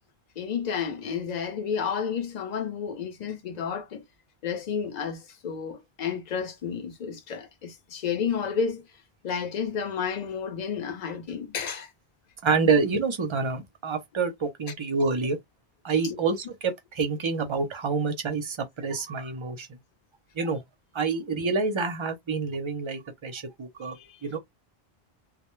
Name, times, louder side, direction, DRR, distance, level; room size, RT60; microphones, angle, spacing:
voice 1, 0.4-4.0 4.4-8.8 9.2-11.9 23.9-24.2, left 6 dB, 50° left, 0.7 m, -31 dB
voice 2, 12.4-15.4 15.8-19.7 20.4-20.6 20.9-24.0 24.2-24.4, right 4 dB, 40° right, 0.5 m, -27 dB
2.1 x 2.0 x 3.0 m
omnidirectional pair, 1.1 m